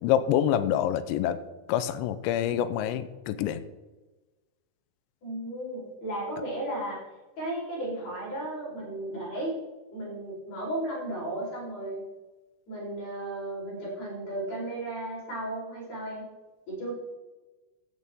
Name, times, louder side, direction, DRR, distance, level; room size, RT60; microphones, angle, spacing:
voice 1, 0.0-1.4 1.7-3.6, left 10 dB, 90° left, 12 dB, 2.9 m, -26 dB
voice 2, 5.2-7.0 7.4-9.5 9.9-12.0 12.7-16.3 16.7-16.9, right 1 dB, 40° left, -5 dB, 5.7 m, -34 dB
15.0 x 8.5 x 3.7 m, 1.2 s
omnidirectional pair, 5.1 m